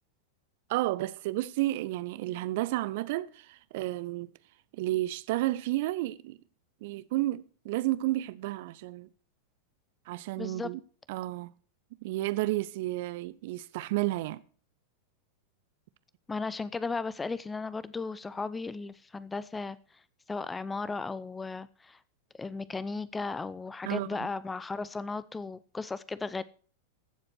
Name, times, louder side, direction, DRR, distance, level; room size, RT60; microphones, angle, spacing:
voice 1, 0.7-4.3 4.7-6.4 6.8-9.1 10.1-10.8 11.1-11.5 12.0-14.4 23.8-24.3, right 17 dB, 50° right, 0.6 m, -31 dB
voice 2, 10.4-10.7 16.3-19.8 20.3-22.0 22.4-26.4, left 4 dB, 10° left, 0.7 m, -35 dB
15.0 x 7.7 x 6.1 m
figure-of-eight pair, 90°, 0 cm